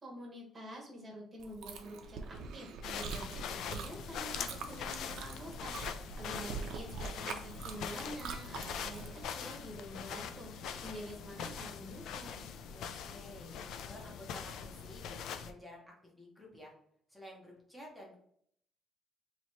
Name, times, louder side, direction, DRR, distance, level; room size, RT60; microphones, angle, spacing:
voice 1, 0.0-12.5, equal, 20° right, -1 dB, 1.1 m, -47 dB
Chewing mastication, 1.4-9.2, right 5 dB, 70° right, 0.5 m, -44 dB
sound 1, 2.8-15.5, left 7 dB, 65° left, 0.3 m, -43 dB
voice 2, 6.3-6.9 12.7-16.7 17.1-18.2, left 1 dB, 5° left, -3 dB, 0.9 m, -53 dB
3.0 x 2.8 x 4.3 m, 0.67 s
cardioid pair, 170°, 0 cm